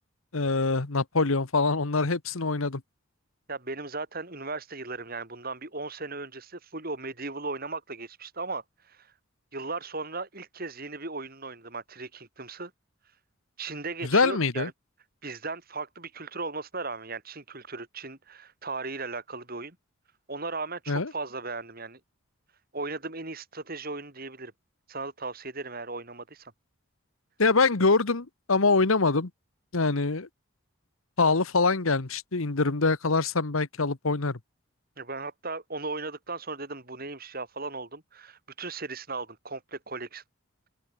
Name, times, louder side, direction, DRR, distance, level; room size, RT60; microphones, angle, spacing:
voice 1, 0.3-2.8 14.0-14.7 20.9-21.1 27.4-29.3 29.7-30.3 31.2-34.4, left 3 dB, 80° left, 1.3 m, -24 dB
voice 2, 3.5-9.1 9.5-12.7 13.6-14.7 15.2-19.8 20.3-22.0 22.7-24.5 24.9-26.5 35.0-40.2, right 3 dB, 45° right, 3.8 m, -37 dB
open air
head